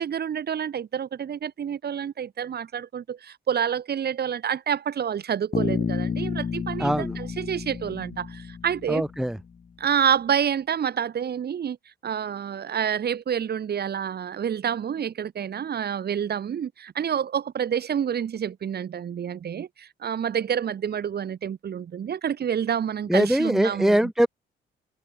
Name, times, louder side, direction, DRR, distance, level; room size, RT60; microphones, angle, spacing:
voice 1, 0.0-9.0 9.8-11.8 12.0-24.1, right 8 dB, 55° right, 2.3 m, -28 dB
Bass guitar, 5.5-9.4, left 6 dB, 35° left, 1.2 m, -30 dB
voice 2, 6.8-7.2 8.9-9.4 23.1-24.3, right 1 dB, ahead, 1.1 m, -22 dB
cardioid pair, 90°, 20 cm